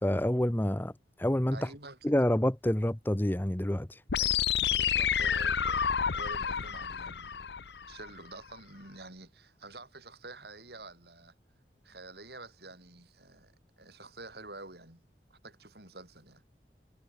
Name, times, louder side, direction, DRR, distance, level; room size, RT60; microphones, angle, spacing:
voice 1, 0.0-0.9 1.2-1.7 2.0-4.0, left 1 dB, 10° left, 0.7 m, -28 dB
voice 2, 1.5-2.0 4.2-4.4 4.7-7.5 7.9-11.3 11.8-15.0 15.3-16.4, right 2 dB, 65° right, 6.2 m, -48 dB
sound 1, 4.1-8.1, left 8 dB, 75° left, 0.8 m, -29 dB
head